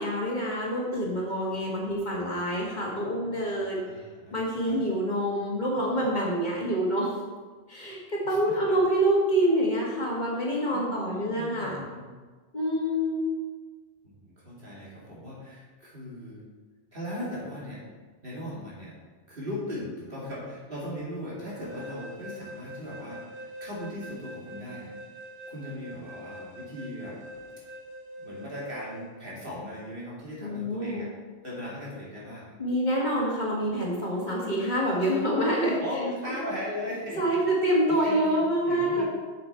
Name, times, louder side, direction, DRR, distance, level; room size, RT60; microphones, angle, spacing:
voice 1, 0.0-3.8 4.3-7.1 7.7-11.8 12.5-13.2 30.4-31.1 32.6-35.8 37.2-39.0, right 1 dB, 40° left, -4 dB, 2.0 m, -26 dB
voice 2, 3.8-4.4 4.6-4.8 8.3-8.6 10.7-12.1 14.0-16.5 16.9-17.8 18.2-19.0 19.3-24.9 25.5-27.2 28.2-31.1 31.4-32.5 35.8-37.4 37.9-39.0, left 1 dB, 55° right, -6 dB, 2.7 m, -38 dB
sound 1, 21.5-29.1, equal, 85° right, 1.7 m, -43 dB
7.7 x 7.3 x 4.5 m, 1.4 s
omnidirectional pair, 1.1 m